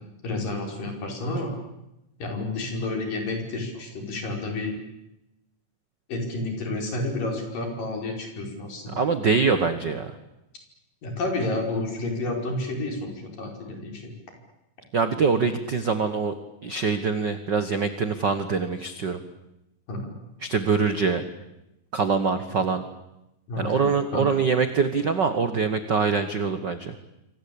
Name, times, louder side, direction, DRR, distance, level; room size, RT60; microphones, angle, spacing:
voice 1, 0.2-1.5 2.2-4.8 6.1-9.0 11.0-14.1 19.9-20.1 23.5-24.4, left 2 dB, 65° left, 3 dB, 7.0 m, -30 dB
voice 2, 8.9-10.2 14.9-16.4 16.6-19.2 20.4-21.2 21.9-22.8 23.6-26.9, right 5 dB, 70° right, 10 dB, 1.0 m, -24 dB
27.5 x 24.0 x 8.7 m, 0.90 s
omnidirectional pair, 4.2 m